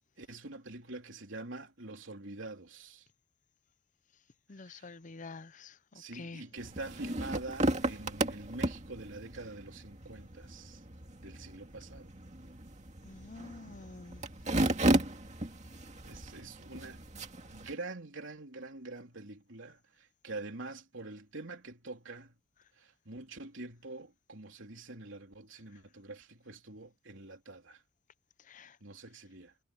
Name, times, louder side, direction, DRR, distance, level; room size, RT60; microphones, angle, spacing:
voice 1, 0.2-3.1 4.6-4.9 5.9-10.8 11.2-12.1 16.0-17.0 17.4-22.3 22.8-27.8 28.8-29.5, right 2 dB, 65° right, 3.6 m, -45 dB
voice 2, 4.5-6.4 13.0-14.2 28.5-28.8, left 3 dB, 35° left, 0.6 m, -48 dB
sound 1, 6.6-17.7, right 1 dB, 35° right, 2.2 m, -34 dB
head